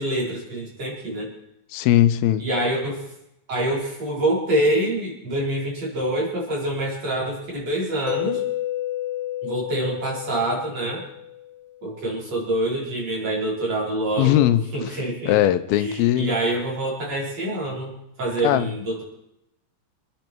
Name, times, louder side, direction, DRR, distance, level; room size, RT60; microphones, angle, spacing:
voice 1, 0.0-1.3 2.4-3.1 3.5-8.4 9.4-11.0 11.8-15.4 15.8-19.0, right 1 dB, 45° right, -3 dB, 5.5 m, -26 dB
voice 2, 1.7-2.4 14.2-14.6 15.3-16.3 18.4-18.7, left 13 dB, 85° left, 11 dB, 2.6 m, -19 dB
Mallet percussion, 8.1-11.8, left 14 dB, 60° left, 1.3 m, -31 dB
27.0 x 11.0 x 4.6 m, 0.84 s
omnidirectional pair, 4.2 m